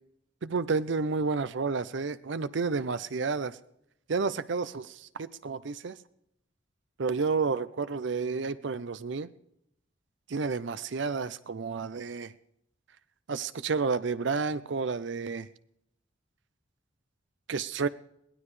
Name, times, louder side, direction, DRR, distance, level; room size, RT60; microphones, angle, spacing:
voice 1, 0.4-3.6 4.1-6.0 7.0-9.3 10.3-12.3 13.3-15.5 17.5-17.9, right 4 dB, 60° right, 14 dB, 0.5 m, -30 dB
22.0 x 17.0 x 3.3 m, 0.78 s
head